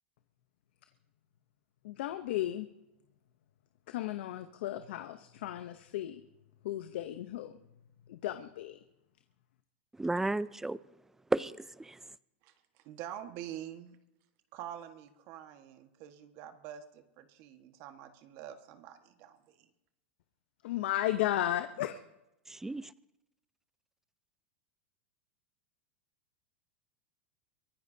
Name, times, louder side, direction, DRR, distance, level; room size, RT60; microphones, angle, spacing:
voice 1, 1.8-2.7 3.9-6.2 6.6-7.5 8.1-8.8 20.6-22.0, left 13 dB, 70° left, 0.8 m, -34 dB
voice 2, 9.9-10.8 11.3-12.0 22.5-22.9, right 2 dB, 5° right, 0.5 m, -33 dB
voice 3, 12.4-14.0 14.5-19.7, right 11 dB, 50° right, 1.5 m, -46 dB
23.5 x 15.5 x 2.8 m
hypercardioid pair, 115°, 6 cm